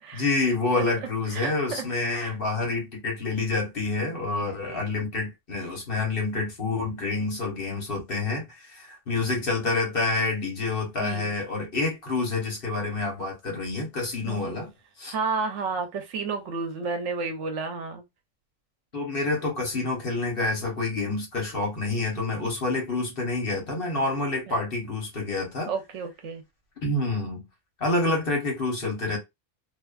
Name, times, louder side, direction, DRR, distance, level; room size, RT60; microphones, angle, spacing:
voice 1, 0.1-14.7 15.0-15.1 18.9-25.7 26.8-27.4 27.8-29.2, left 3 dB, 50° left, 1.2 m, -28 dB
voice 2, 1.3-1.8 2.1-2.3 4.3-4.9 11.0-11.3 14.2-14.6 15.1-18.0 24.5-24.6 25.7-26.4, right 4 dB, 75° right, 1.0 m, -32 dB
2.6 x 2.4 x 2.3 m
omnidirectional pair, 1.2 m